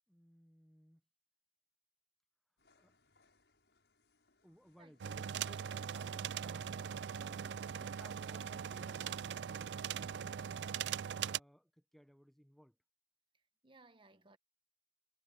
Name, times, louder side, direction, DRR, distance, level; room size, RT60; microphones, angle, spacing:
voice 1, 0.1-1.0 2.8-3.0 4.4-6.8 7.1-10.8 11.3-12.8, equal, ahead, 1.0 m, -62 dB
sound 1, 2.6-10.4, left 3 dB, 80° left, 6.7 m, -76 dB
sound 2, 5.0-11.4, right 8 dB, 85° right, 0.4 m, -40 dB
voice 2, 13.3-14.4, right 3 dB, 30° right, 1.2 m, -63 dB
head